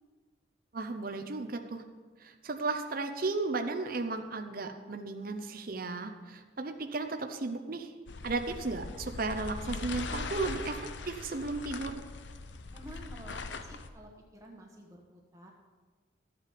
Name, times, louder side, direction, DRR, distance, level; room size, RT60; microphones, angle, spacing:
voice 1, 0.7-1.8 2.2-7.9 8.2-10.8 11.1-12.0, right 3 dB, 45° right, 6 dB, 0.7 m, -35 dB
sound 1, 8.1-13.9, left 3 dB, 65° left, 0.7 m, -41 dB
voice 2, 12.7-15.5, right 1 dB, 15° right, -1 dB, 1.2 m, -51 dB
13.5 x 8.3 x 5.2 m, 1.4 s
head